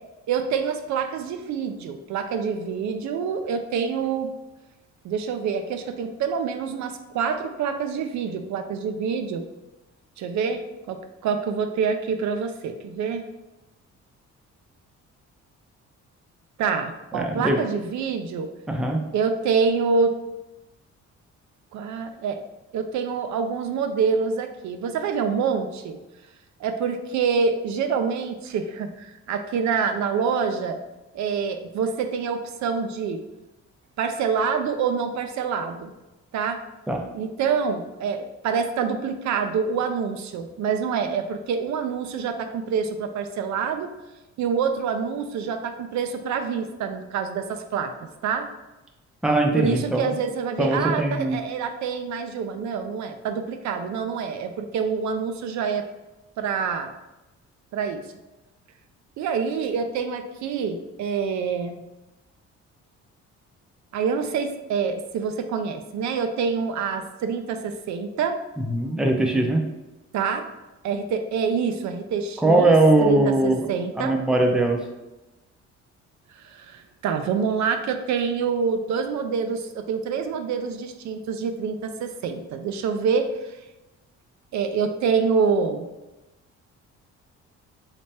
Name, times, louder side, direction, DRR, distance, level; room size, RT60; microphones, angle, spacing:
voice 1, 0.3-4.3 5.0-9.5 10.2-10.6 10.9-13.3 16.6-18.5 19.1-20.1 21.7-22.4 22.7-26.0 26.6-30.8 31.1-33.2 34.0-35.9 36.3-36.6 37.1-43.9 44.4-47.9 48.2-48.5 49.6-55.9 56.4-56.9 57.7-58.0 59.2-61.8 63.9-68.4 70.1-70.5 70.8-72.7 73.0-74.2 76.3-83.6 84.5-85.9, right 6 dB, 70° right, 7 dB, 0.4 m, -26 dB
voice 2, 17.1-17.7 18.7-19.0 36.9-37.0 49.2-50.1 50.6-51.4 68.6-69.6 72.4-73.7 74.0-74.8, right 2 dB, ahead, 1 dB, 0.5 m, -20 dB
3.3 x 3.2 x 2.7 m, 1.0 s
cardioid pair, 90°, 30 cm